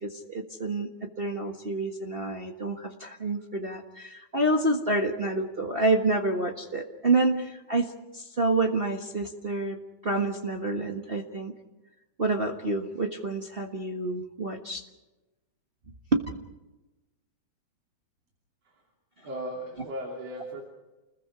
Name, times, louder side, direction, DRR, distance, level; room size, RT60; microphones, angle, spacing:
voice 1, 0.0-9.8 10.0-11.5 12.2-14.8 16.1-16.2, right 2 dB, 40° right, 2 dB, 0.8 m, -28 dB
voice 2, 19.2-20.6, equal, 55° right, 0 dB, 4.0 m, -36 dB
30.0 x 21.0 x 5.0 m, 1.1 s
omnidirectional pair, 3.4 m